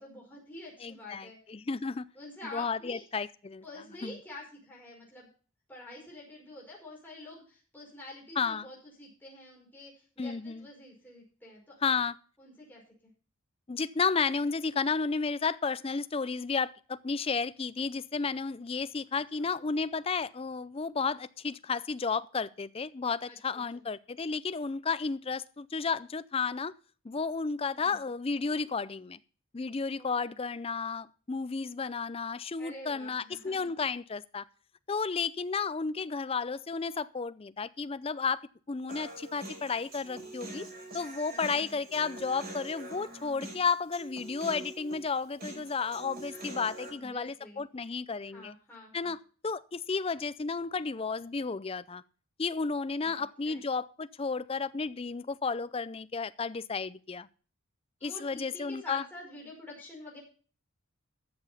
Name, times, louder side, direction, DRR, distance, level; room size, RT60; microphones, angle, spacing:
voice 1, 0.0-1.4 2.1-3.0 3.6-5.3 5.7-12.0 12.4-12.8 23.3-23.6 27.7-28.0 30.0-30.3 32.6-33.7 41.3-41.7 46.8-47.6 48.3-49.1 53.0-53.6 58.0-60.2, left 2 dB, 10° left, 5.1 m, -47 dB
voice 2, 0.8-2.1 2.5-3.6 4.0-4.2 8.4-8.7 10.2-10.7 11.8-12.1 13.7-26.7 27.0-29.2 29.5-34.5 34.9-40.7 40.9-48.5 48.9-52.0 52.4-57.3 58.0-59.0, left 5 dB, 25° left, 0.4 m, -32 dB
Human voice, 38.9-46.9, right 1 dB, 45° right, 4.5 m, -44 dB
13.0 x 7.0 x 5.6 m
head